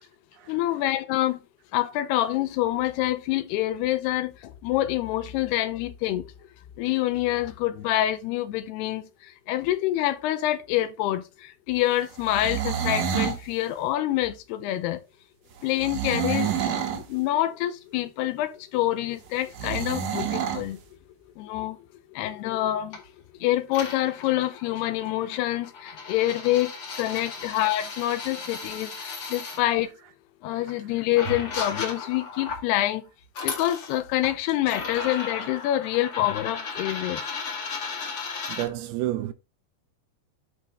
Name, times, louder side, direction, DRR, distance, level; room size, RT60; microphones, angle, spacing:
voice 1, 0.5-1.4 1.7-6.3 6.8-15.0 15.6-16.5 16.9-20.8 21.4-21.8 22.1-23.0 23.4-29.9 30.4-33.0 33.4-37.2, left 14 dB, 80° left, 2.8 m, -26 dB
sound 1, 12.2-13.4 15.8-17.0 19.5-20.6, right 8 dB, 60° right, 1.9 m, -28 dB
sound 2, 22.9-23.1 23.7-29.6 30.7-30.8 31.2-32.7 33.2-34.3 34.7-38.6, left 4 dB, 40° left, 2.3 m, -35 dB
voice 2, 38.5-39.3, right 14 dB, 80° right, 2.5 m, -31 dB
11.5 x 4.2 x 3.6 m
omnidirectional pair, 4.8 m